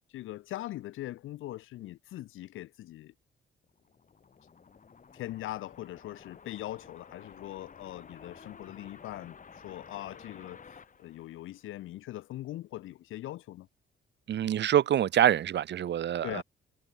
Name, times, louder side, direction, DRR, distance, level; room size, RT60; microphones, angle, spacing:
voice 1, 0.1-3.1 5.1-13.7 16.2-16.4, left 15 dB, 85° left, 2.5 m, -41 dB
sound 1, 3.6-12.0, left 6 dB, 40° left, 7.4 m, -53 dB
voice 2, 14.3-16.4, right 10 dB, 60° right, 1.4 m, -25 dB
cardioid pair, 90°, 20 cm